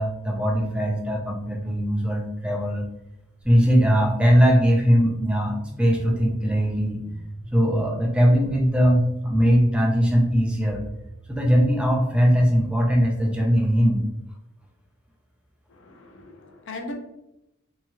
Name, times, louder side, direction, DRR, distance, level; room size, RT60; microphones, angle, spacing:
voice 1, 0.0-2.9 3.4-7.0 7.5-10.8 11.3-14.0, equal, 5° right, 0 dB, 0.4 m, -20 dB
sound 1, 3.4-13.5, right 1 dB, 55° right, 0.6 m, -42 dB
voice 2, 15.7-16.9, left 2 dB, 60° left, 3 dB, 0.5 m, -38 dB
2.9 x 2.4 x 2.8 m, 0.87 s
head